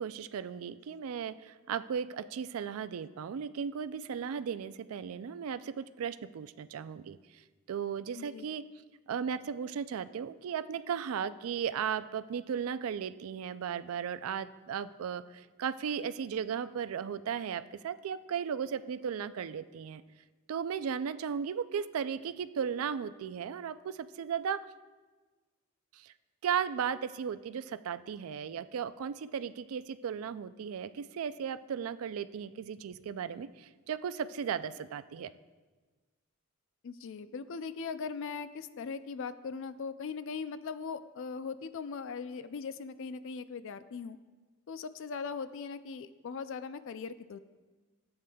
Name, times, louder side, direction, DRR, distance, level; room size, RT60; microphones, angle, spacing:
voice 1, 0.0-7.2 7.7-8.6 9.1-20.0 20.5-24.7 25.9-26.1 26.4-35.3, right 7 dB, 80° right, 13 dB, 0.3 m, -36 dB
voice 2, 8.2-8.5 36.8-44.2 44.7-47.4, left 5 dB, 65° left, 12 dB, 0.4 m, -40 dB
14.0 x 7.9 x 2.3 m, 1.3 s
head